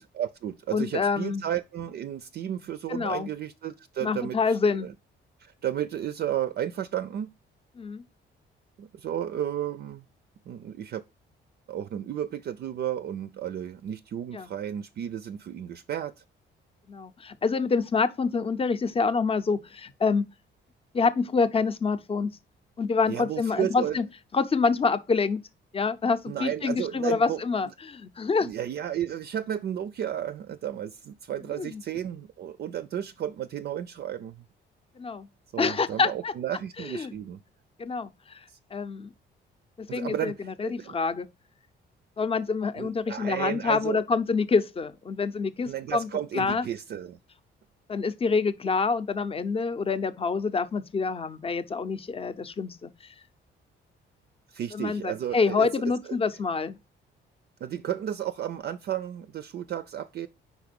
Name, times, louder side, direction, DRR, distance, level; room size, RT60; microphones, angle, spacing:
voice 1, 0.0-4.9 5.4-7.3 8.8-10.0 10.5-11.0 11.7-16.2 23.1-24.0 26.3-27.4 28.4-34.4 35.5-37.4 38.5-38.6 39.9-41.0 42.8-44.0 45.6-47.2 54.5-56.2 57.6-60.3, right 10 dB, 55° right, 0.4 m, -33 dB
voice 2, 0.7-1.4 2.9-3.3 4.0-4.9 7.8-8.0 14.3-14.5 16.9-20.3 20.9-22.4 22.8-24.0 24.3-25.5 25.7-28.5 31.6-31.8 35.0-35.3 35.6-36.3 36.8-37.1 37.8-38.4 38.7-39.1 39.8-41.3 42.2-46.1 46.3-46.6 47.9-53.1 54.7-56.8, left 4 dB, 30° left, 0.6 m, -27 dB
4.8 x 4.2 x 5.2 m
cardioid pair, 90°, 20 cm